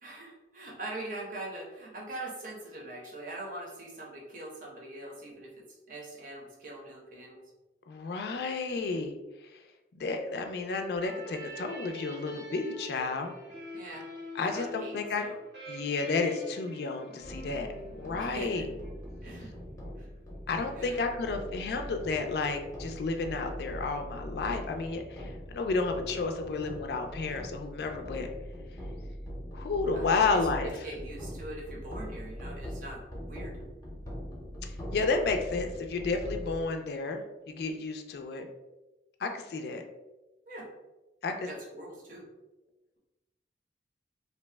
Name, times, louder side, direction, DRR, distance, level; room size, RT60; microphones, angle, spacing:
voice 1, 0.0-5.5 5.9-7.4 13.7-14.0 14.4-15.4 18.2-18.6 19.2-19.5 20.0-20.1 20.7-21.1 29.9-30.4 30.8-33.5 40.5-40.7 41.4-42.2, right 1 dB, 45° right, -2 dB, 0.7 m, -42 dB
voice 2, 7.9-9.2 10.0-13.3 14.3-15.2 15.7-18.7 20.5-28.3 29.5-30.7 34.6-38.5 39.2-39.8 41.2-41.5, left 4 dB, 65° left, 5 dB, 0.3 m, -31 dB
sound 1, 11.0-19.4, left 1 dB, 85° right, 1.2 m, -46 dB
sound 2, 17.2-36.6, equal, 20° left, 0.6 m, -42 dB
2.7 x 2.1 x 3.2 m, 1.1 s
head